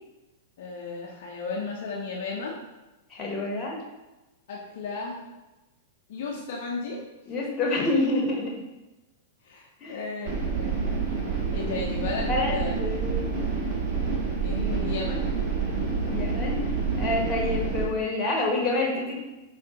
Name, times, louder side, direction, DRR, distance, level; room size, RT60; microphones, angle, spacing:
voice 1, 0.6-2.6 4.5-5.2 6.1-7.0 9.4-10.8 11.5-12.8 14.4-15.4, left 4 dB, 60° left, -3 dB, 0.6 m, -34 dB
voice 2, 3.1-3.8 7.3-8.5 9.8-10.0 12.3-13.4 16.1-16.6 17.0-19.2, left 2 dB, 30° left, -1 dB, 0.9 m, -27 dB
sound 1, 10.3-17.9, right 5 dB, 45° right, 0.9 m, -28 dB
4.5 x 2.4 x 2.8 m, 1.0 s
hypercardioid pair, 105°, 0 cm